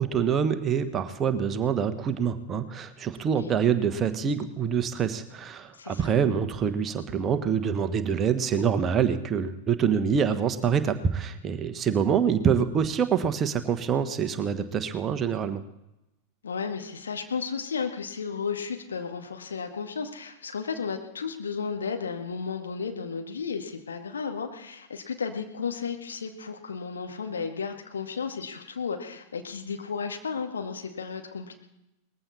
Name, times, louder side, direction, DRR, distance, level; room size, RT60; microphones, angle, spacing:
voice 1, 0.0-15.6, right 7 dB, 25° right, 9 dB, 1.3 m, -26 dB
voice 2, 5.7-6.2 16.4-31.5, left 5 dB, 70° left, 5 dB, 2.0 m, -33 dB
20.0 x 15.0 x 4.3 m, 0.90 s
figure-of-eight pair, 90°, 0 cm